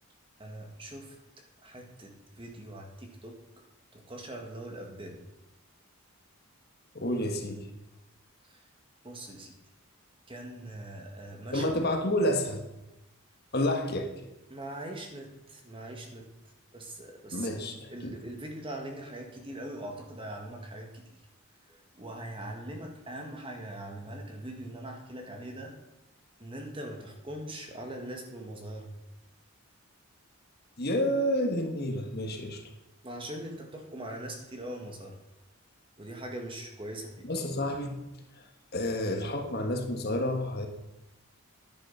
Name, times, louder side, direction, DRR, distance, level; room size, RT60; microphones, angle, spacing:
voice 1, 0.4-1.2 1.6-3.4 3.9-5.2 8.4-8.6 9.0-9.6 10.3-11.7 14.5-16.3 16.7-17.5 17.9-21.0 21.7-25.7 26.4-28.9 33.0-35.2 36.0-37.3, right 1 dB, 25° right, 2 dB, 1.8 m, -41 dB
voice 2, 6.9-7.7 11.5-12.6 13.5-14.1 17.3-18.1 30.8-32.6 37.2-38.0 38.7-40.7, left 1 dB, 45° left, 4 dB, 1.5 m, -29 dB
10.5 x 10.0 x 5.7 m, 0.93 s
head